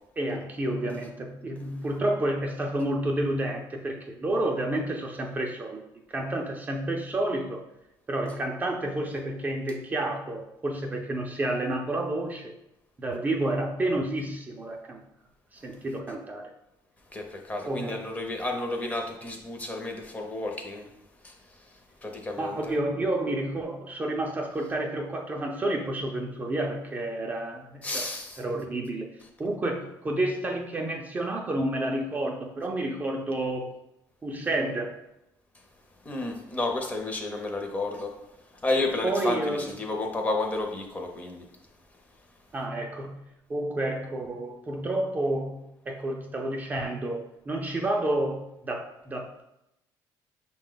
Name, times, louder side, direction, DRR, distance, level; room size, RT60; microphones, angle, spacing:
voice 1, 0.2-5.8 6.1-7.6 8.1-12.5 13.0-15.0 15.5-16.5 17.7-18.0 22.4-28.0 28.4-29.1 29.4-33.8 34.2-34.9 39.0-39.7 42.5-43.2 43.5-49.4, right 1 dB, 20° right, 1 dB, 0.4 m, -30 dB
voice 2, 17.1-20.9 21.2-21.3 22.0-22.6 27.8-28.4 36.0-38.1 38.6-41.5, left 2 dB, 20° left, 3 dB, 0.6 m, -31 dB
5.4 x 2.2 x 3.8 m, 0.86 s
cardioid pair, 130°, 8 cm